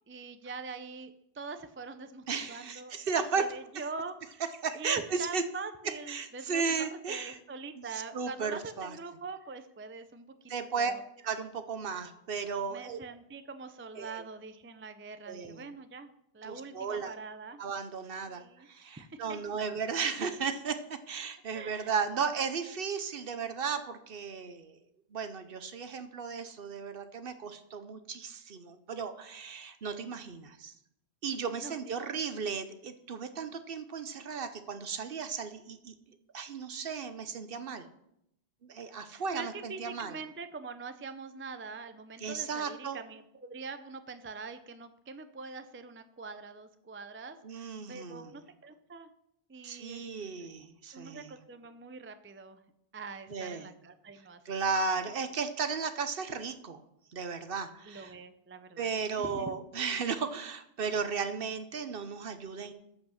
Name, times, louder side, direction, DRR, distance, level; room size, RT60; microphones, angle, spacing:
voice 1, 0.1-4.4 4.7-11.0 12.7-16.1 16.3-17.6 18.3-18.7 19.1-20.0 21.5-21.9 31.6-31.9 39.1-49.1 49.5-50.0 50.9-52.6 52.9-54.6 55.0-55.1 57.9-58.9 59.2-59.6, right 4 dB, 15° right, 9 dB, 0.4 m, -44 dB
voice 2, 2.3-3.5 4.6-5.4 6.1-7.4 7.8-9.0 10.5-10.9 11.2-13.0 14.0-14.2 15.3-15.7 16.4-17.1 17.6-24.8 25.1-30.7 31.2-35.9 36.3-37.8 38.7-40.2 42.2-43.0 47.4-48.3 49.6-51.3 53.3-53.7 54.5-56.8 57.1-58.1 58.8-62.7, right 5 dB, 60° right, 9 dB, 1.0 m, -35 dB
13.5 x 5.1 x 6.4 m, 0.79 s
omnidirectional pair, 1.1 m